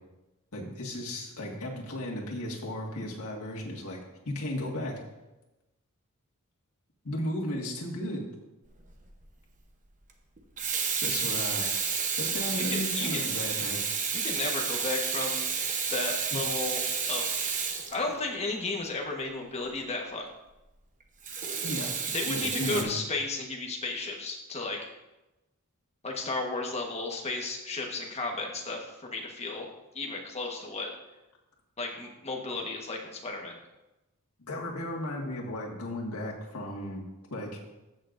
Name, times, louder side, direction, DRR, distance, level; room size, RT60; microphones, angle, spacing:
voice 1, 0.5-4.0 4.3-5.0 7.0-8.2 11.0-11.7 12.2-13.8 16.3-16.4 21.6-21.9 22.3-22.9 34.5-37.0 37.3-37.6, left 1 dB, 85° left, -2 dB, 1.8 m, -35 dB
Water tap faucet / Sink (filling or washing), 8.8-9.0 10.4-18.6 21.2-22.8, right 6 dB, 35° right, 0.9 m, -31 dB
voice 2, 12.5-13.3 14.1-15.5 15.9-16.8 17.1-17.3 17.9-20.3 22.1-24.8 26.0-29.7 29.9-30.9 31.8-33.6, left 3 dB, 30° left, 0 dB, 1.3 m, -34 dB
14.5 x 6.5 x 2.6 m, 1.0 s
head